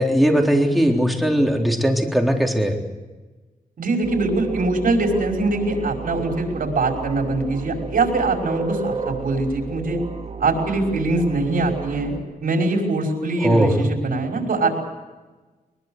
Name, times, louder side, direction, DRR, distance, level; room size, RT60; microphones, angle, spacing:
voice 1, 0.0-2.8 13.4-13.7, equal, ahead, 1 dB, 3.7 m, -19 dB
voice 2, 3.8-10.0 10.4-12.1 12.4-14.7, right 2 dB, 75° right, 2 dB, 5.6 m, -22 dB
sound 1, 4.0-12.2, right 4 dB, 45° right, 4.1 m, -32 dB
22.0 x 21.5 x 8.1 m, 1.2 s
wide cardioid pair, 90°, 15 cm